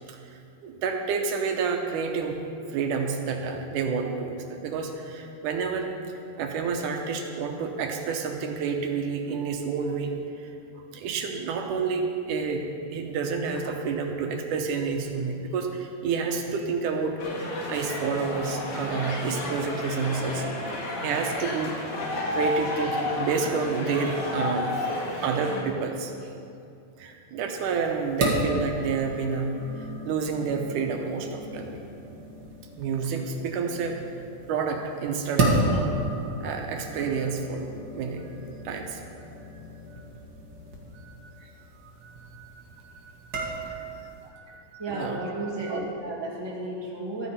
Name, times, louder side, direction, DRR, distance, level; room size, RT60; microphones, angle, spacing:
voice 1, 0.6-2.4 2.7-12.0 12.3-17.2 17.7-22.1 22.3-24.7 25.0-26.1 27.0-29.7 30.0-31.8 32.8-34.0 34.5-36.0 36.4-37.7 37.9-39.0 39.9-40.0 40.9-41.5 42.0-43.8 44.3-45.3, right 5 dB, 80° right, 3 dB, 2.4 m, -30 dB
sound 1, 17.2-25.6, left 1 dB, 70° left, 3.3 m, -31 dB
sound 2, 27.5-44.3, right 1 dB, 40° right, 1.6 m, -33 dB
voice 2, 44.8-47.3, right 2 dB, 10° right, -5 dB, 1.6 m, -32 dB
14.5 x 12.5 x 4.3 m, 2.6 s
omnidirectional pair, 3.6 m